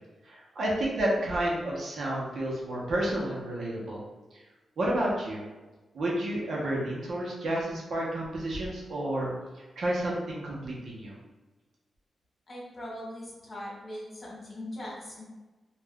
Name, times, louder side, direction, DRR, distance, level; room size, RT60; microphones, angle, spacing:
voice 1, 0.2-4.0 4.3-4.4 4.8-5.4 5.9-11.2, right 1 dB, 70° right, -4 dB, 0.8 m, -31 dB
voice 2, 12.5-15.2, left 1 dB, 35° left, -5 dB, 1.3 m, -40 dB
3.5 x 2.4 x 2.2 m, 1.2 s
cardioid pair, 75°, 0 cm